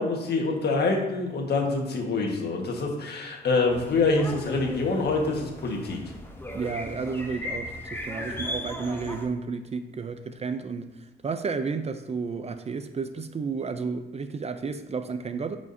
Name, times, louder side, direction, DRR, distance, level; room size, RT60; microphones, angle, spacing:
voice 1, 0.0-6.0, left 3 dB, 55° left, 1.5 m, -26 dB
sound 1, 3.7-9.3, left 1 dB, 10° left, 1.0 m, -37 dB
voice 2, 6.5-10.9 11.2-15.6, right 5 dB, 30° right, 0.5 m, -32 dB
9.2 x 5.0 x 2.7 m
cardioid pair, 90°, 20 cm